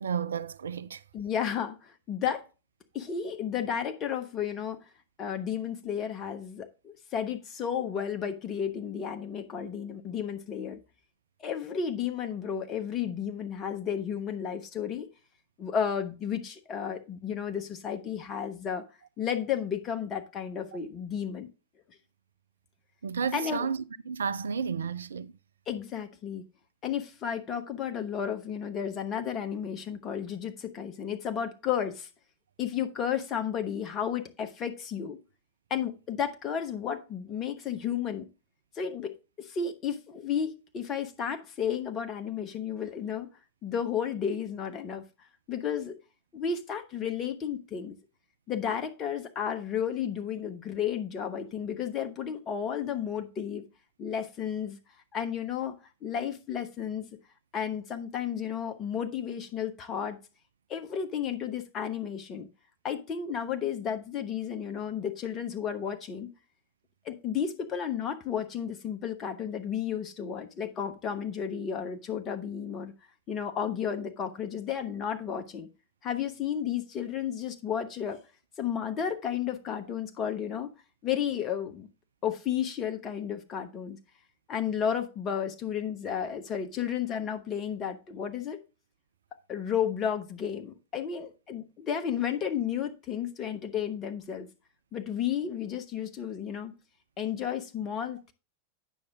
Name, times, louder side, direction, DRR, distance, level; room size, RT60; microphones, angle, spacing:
voice 1, 0.0-1.0 23.0-25.3, right 6 dB, 70° right, 0.4 m, -32 dB
voice 2, 1.1-2.4 2.9-4.8 5.2-10.8 11.4-15.1 15.6-18.8 19.2-21.5 23.3-23.7 25.7-26.4 26.8-32.1 32.6-35.2 35.7-38.3 38.7-43.3 43.6-45.0 45.5-46.0 46.3-48.0 48.5-53.6 54.0-54.8 55.1-57.1 57.5-60.2 60.7-62.5 62.8-66.3 67.0-72.9 73.3-75.7 76.0-78.2 78.6-80.7 81.0-81.9 82.2-84.0 84.5-88.6 89.5-94.5 94.9-96.7 97.2-98.3, left 8 dB, 30° left, 1.2 m, -32 dB
9.2 x 6.5 x 3.5 m
figure-of-eight pair, 90°, 0 cm